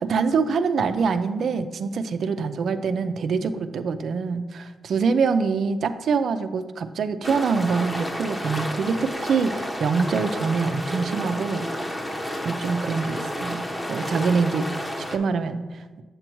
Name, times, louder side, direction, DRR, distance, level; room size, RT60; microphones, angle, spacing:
voice 1, 0.1-11.7 12.4-15.8, right 5 dB, 70° right, 10 dB, 0.5 m, -25 dB
sound 1, 7.2-15.2, equal, 20° left, 1.1 m, -31 dB
7.8 x 7.6 x 3.0 m, 1.3 s
cardioid pair, 55°, 0 cm